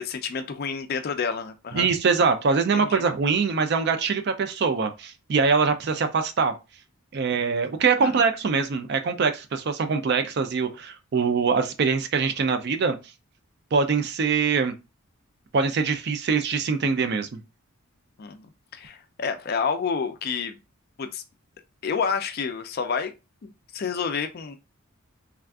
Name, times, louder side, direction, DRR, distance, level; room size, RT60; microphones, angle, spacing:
voice 1, 0.0-1.9 2.7-3.0 8.0-8.2 18.2-20.6 21.0-21.2 21.8-23.1 23.4-24.6, left 6 dB, 45° left, 0.3 m, -29 dB
voice 2, 1.7-6.5 7.1-13.0 13.7-14.7 15.5-17.4, right 5 dB, 50° right, 0.4 m, -23 dB
3.4 x 2.4 x 2.3 m
head